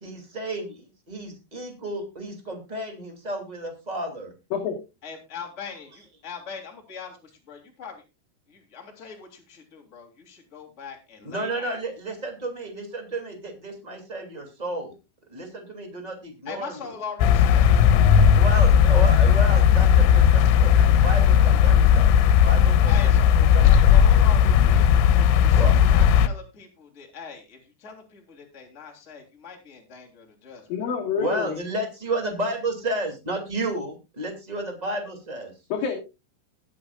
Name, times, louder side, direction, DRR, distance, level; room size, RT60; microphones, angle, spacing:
voice 1, 0.0-4.3 11.2-14.9 15.3-16.9 18.3-22.1 22.4-24.0 25.5-25.7 31.2-35.5, right 1 dB, 20° right, 3 dB, 1.0 m, -32 dB
voice 2, 5.0-5.9 6.2-7.1 7.5-8.0 8.5-11.8 16.4-17.8 22.8-24.9 25.1-30.7, left 6 dB, 20° left, 2 dB, 2.3 m, -40 dB
sound 1, 17.2-26.3, left 8 dB, 85° left, 3.3 m, -16 dB
voice 3, 30.7-31.6 35.7-36.0, left 6 dB, 60° left, 1 dB, 2.8 m, -27 dB
21.5 x 7.7 x 2.4 m, 0.26 s
omnidirectional pair, 5.6 m